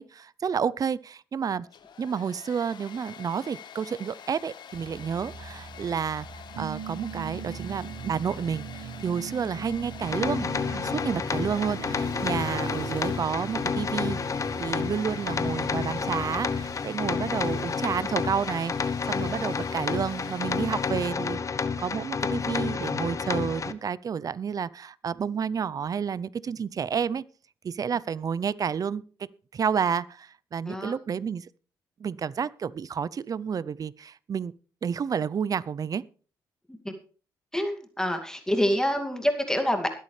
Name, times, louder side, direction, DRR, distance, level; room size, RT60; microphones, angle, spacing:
voice 1, 0.0-1.7 2.0-6.3 6.6-14.2 14.6-27.2 27.6-29.0 29.5-31.5 32.0-34.5 34.8-36.0, right 7 dB, 45° right, 19 dB, 0.6 m, -30 dB
Domestic sounds home sounds, 1.6-21.2, left 8 dB, 60° left, 1.4 m, -46 dB
sound 1, 4.7-16.7, right 6 dB, 85° right, 1.8 m, -40 dB
sound 2, 10.0-23.7, left 5 dB, 40° left, 1.0 m, -30 dB
voice 2, 37.5-39.9, equal, 5° left, 5 dB, 2.3 m, -27 dB
21.0 x 8.5 x 3.3 m, 0.40 s
supercardioid pair, 60°, 8 cm